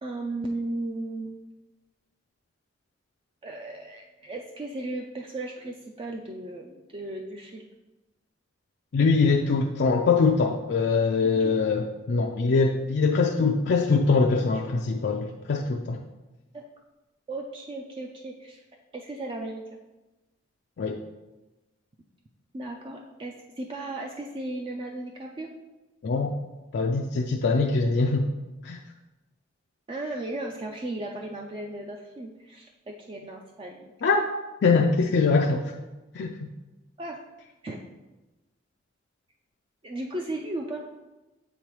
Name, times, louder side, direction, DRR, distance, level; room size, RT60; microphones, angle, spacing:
voice 1, 0.0-1.3 3.4-7.7 11.2-11.7 16.5-16.6 17.3-18.6 18.9-19.8 22.5-25.5 29.9-33.9 37.0-37.2 37.6-37.8 39.8-40.8, right 2 dB, 30° right, 0 dB, 0.4 m, -36 dB
voice 2, 8.9-16.0 20.8-21.0 26.0-26.3 26.7-28.3 28.6-28.8 34.0-34.2 34.6-35.7 36.1-36.5, left 4 dB, 65° left, 1 dB, 0.4 m, -23 dB
8.1 x 3.8 x 3.1 m, 1.1 s
head